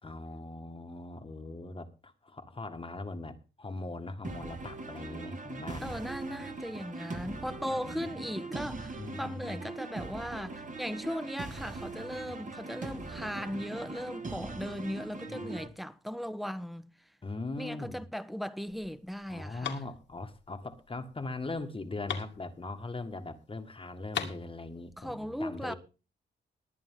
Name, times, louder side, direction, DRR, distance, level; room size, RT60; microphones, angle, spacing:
voice 1, 0.0-5.9 7.8-8.3 9.0-9.7 12.2-12.3 15.3-15.7 17.2-18.0 19.3-25.7, left 2 dB, 30° left, 1.7 m, -40 dB
sound 1, 4.2-15.7, right 3 dB, 40° right, 2.1 m, -41 dB
voice 2, 5.8-16.9 17.6-19.8 25.0-25.7, equal, ahead, 1.1 m, -38 dB
sound 2, 18.7-23.2 23.5-23.6 23.8-25.1, left 8 dB, 80° left, 2.5 m, -41 dB
20.5 x 8.7 x 3.8 m
cardioid pair, 85°, 19 cm